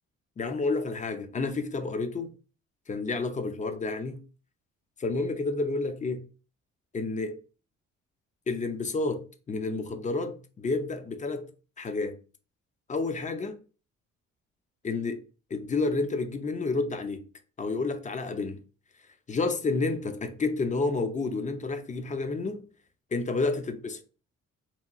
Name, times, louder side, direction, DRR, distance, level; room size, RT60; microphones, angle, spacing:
voice 1, 0.4-2.3 2.9-4.2 5.0-6.2 6.9-7.4 8.5-11.5 11.8-12.2 12.9-13.6 14.8-15.2 15.5-17.3 17.6-18.6 19.3-22.6 23.1-24.0, left 3 dB, 25° left, 0.4 m, -30 dB
2.8 x 2.2 x 2.5 m
cardioid pair, 90°, 30 cm